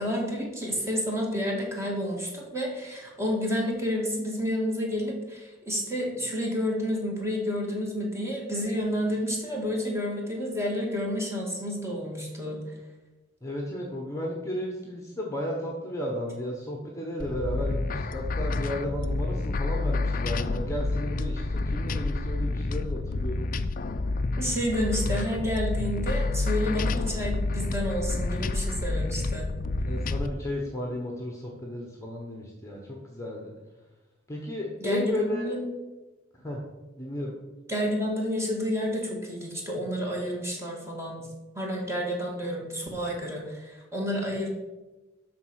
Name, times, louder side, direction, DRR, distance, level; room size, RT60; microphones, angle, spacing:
voice 1, 0.0-12.6 24.4-29.5 34.8-35.7 37.7-41.2 41.5-44.5, equal, 15° right, -2 dB, 2.3 m, -30 dB
voice 2, 13.4-23.5 29.8-33.5 34.3-35.5 36.4-36.6 37.0-37.3, left 1 dB, 15° left, -1 dB, 1.2 m, -33 dB
sound 1, 17.2-30.3, left 2 dB, 45° left, 0.5 m, -29 dB
12.5 x 4.3 x 6.4 m, 1.1 s
head